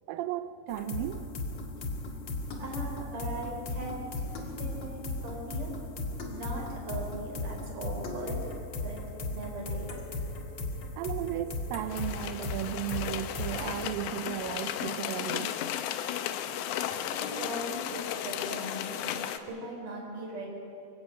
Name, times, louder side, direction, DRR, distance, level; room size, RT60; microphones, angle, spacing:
voice 1, 0.1-1.3 11.0-15.6, right 12 dB, 85° right, 11 dB, 2.0 m, -35 dB
sound 1, 0.7-13.8, left 2 dB, 40° left, 1.7 m, -37 dB
voice 2, 2.6-5.8 6.3-8.5 8.8-9.0 9.3-9.9 16.9-19.2 19.5-20.5, right 1 dB, 50° right, -1 dB, 5.7 m, -39 dB
sound 2, 11.9-19.4, left 10 dB, 85° left, 3.2 m, -35 dB
25.0 x 15.5 x 8.5 m, 2.9 s
omnidirectional pair, 4.9 m